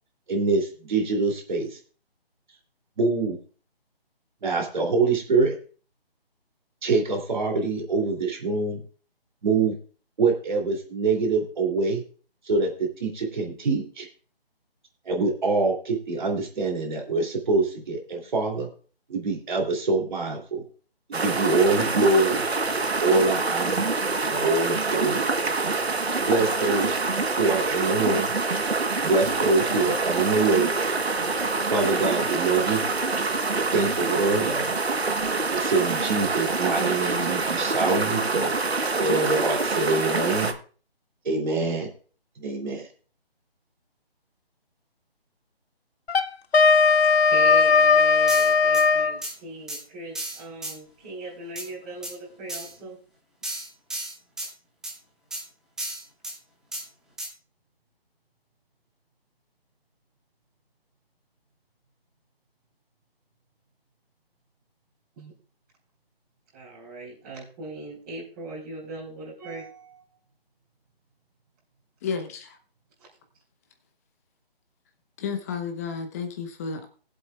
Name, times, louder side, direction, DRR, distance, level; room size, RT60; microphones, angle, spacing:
voice 1, 0.3-1.8 3.0-3.4 4.4-5.5 6.8-8.8 9.4-9.7 10.2-12.0 12.4-12.7 13.0-14.1 15.0-18.7 19.1-20.6 21.1-22.5 23.0-23.8 24.2-25.3 26.2-27.0 27.4-28.4 29.0-30.7 31.7-32.8 33.7-34.8 35.5-38.5 39.0-40.5 41.2-41.9 42.4-42.9, right 3 dB, 50° right, 3.1 m, -24 dB
sound 1, 21.1-40.5, right 3 dB, 85° right, 1.4 m, -26 dB
Wind instrument woodwind instrument, 46.1-49.2, left 4 dB, 80° left, 0.8 m, -18 dB
voice 2, 47.3-53.0 65.2-65.3 66.5-70.2 73.0-73.1, right 2 dB, 20° right, 3.9 m, -39 dB
sound 2, 48.3-48.8 49.2-49.3 49.7-49.8 50.1-50.7 51.5-51.7 52.0-52.1 52.5-52.7 53.4-54.5 54.8-54.9 55.3-55.4 55.8-56.3 56.7-56.8 57.2-57.3, right 1 dB, ahead, 1.0 m, -33 dB
voice 3, 72.0-72.6 75.2-76.9, left 6 dB, 15° left, 1.0 m, -32 dB
20.0 x 7.8 x 2.4 m
figure-of-eight pair, 155°, 31 cm